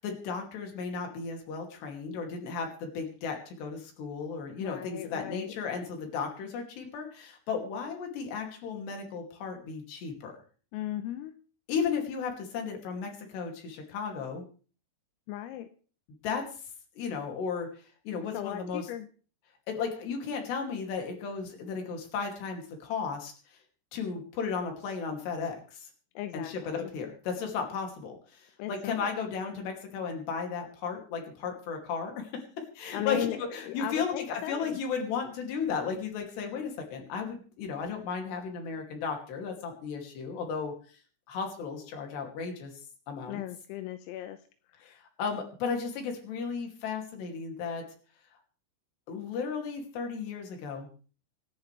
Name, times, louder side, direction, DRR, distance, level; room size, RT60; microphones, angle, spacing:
voice 1, 0.0-10.3 11.7-14.4 16.2-16.4 17.0-17.7 18.0-18.9 19.7-23.3 23.9-25.9 26.3-32.4 32.8-33.3 33.5-40.7 41.3-42.7 43.1-43.4 44.8-44.9 45.2-47.8 49.1-50.9, left 5 dB, 60° left, 3 dB, 4.5 m, -34 dB
voice 2, 4.6-5.6 10.7-11.3 15.3-15.7 18.3-19.1 26.2-26.9 28.6-29.1 32.9-34.8 43.3-44.4 44.8-45.0, left 13 dB, 85° left, 9 dB, 3.5 m, -37 dB
27.0 x 10.5 x 3.4 m, 0.40 s
omnidirectional pair, 6.0 m